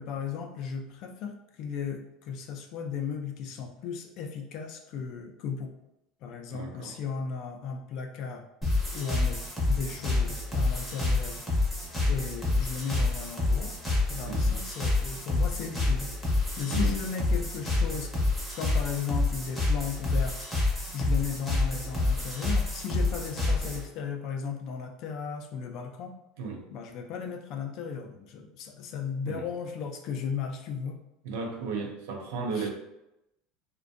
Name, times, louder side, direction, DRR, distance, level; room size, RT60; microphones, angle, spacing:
voice 1, 0.0-5.7 6.2-8.4 8.9-9.4 9.7-11.4 12.0-13.7 14.1-16.1 16.6-18.1 18.5-20.4 20.9-26.2 26.7-31.0 32.5-32.7, left 6 dB, 50° left, 5 dB, 0.3 m, -35 dB
voice 2, 6.5-6.9 14.3-14.6 16.7-16.9 26.4-26.7 29.2-29.5 31.2-32.7, right 4 dB, 80° right, 2 dB, 0.5 m, -35 dB
sound 1, 8.6-23.9, left 2 dB, ahead, 0.6 m, -28 dB
2.5 x 2.1 x 2.5 m, 0.87 s
cardioid pair, 155°, 0 cm